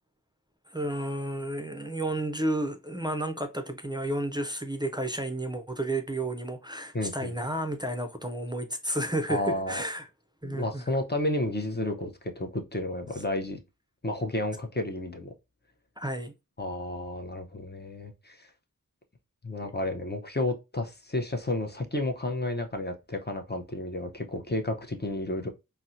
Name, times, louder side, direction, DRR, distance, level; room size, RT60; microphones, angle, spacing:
voice 1, 0.7-10.1 10.4-10.8 16.0-16.3, right 1 dB, 15° right, 0.4 m, -32 dB
voice 2, 6.9-7.3 9.3-9.8 10.4-13.6 14.0-15.3 16.6-18.5 19.4-25.5, left 1 dB, 30° left, 0.6 m, -31 dB
4.1 x 2.1 x 2.5 m
wide cardioid pair, 45°, 32 cm